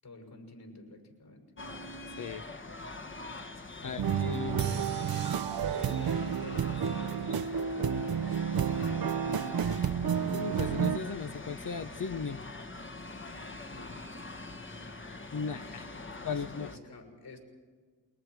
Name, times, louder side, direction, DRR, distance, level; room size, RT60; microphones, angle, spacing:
voice 1, 0.0-1.5 3.7-4.3 5.7-7.3 13.6-14.5 15.9-17.4, left 3 dB, 60° left, 3 dB, 6.4 m, -49 dB
sound 1, 1.6-16.8, left 2 dB, 25° left, 1.3 m, -44 dB
voice 2, 3.8-4.8 10.3-12.4 15.3-15.9 16.2-16.7, left 5 dB, 45° left, 10 dB, 0.8 m, -36 dB
sound 2, 4.0-11.0, right 7 dB, 55° right, 0.8 m, -30 dB
28.5 x 21.5 x 4.7 m, 1.5 s
supercardioid pair, 40°, 44 cm